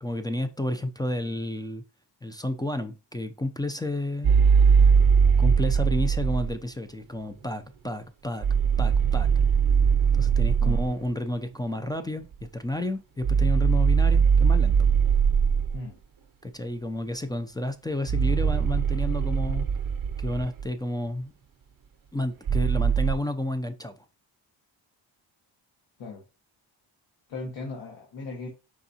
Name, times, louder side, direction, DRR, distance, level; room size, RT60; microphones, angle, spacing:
voice 1, 0.0-1.8 2.2-4.3 5.4-8.5 8.8-9.3 10.1-14.9 16.4-19.7 20.2-21.3 22.1-24.0, left 1 dB, 10° left, 0.3 m, -31 dB
sound 1, 4.2-6.6 8.4-10.9 13.2-15.8 18.1-20.7 22.5-23.1, right 6 dB, 45° right, 0.6 m, -21 dB
voice 2, 27.3-28.5, left 3 dB, 70° left, 1.2 m, -37 dB
4.9 x 3.5 x 2.7 m
cardioid pair, 100°, 46 cm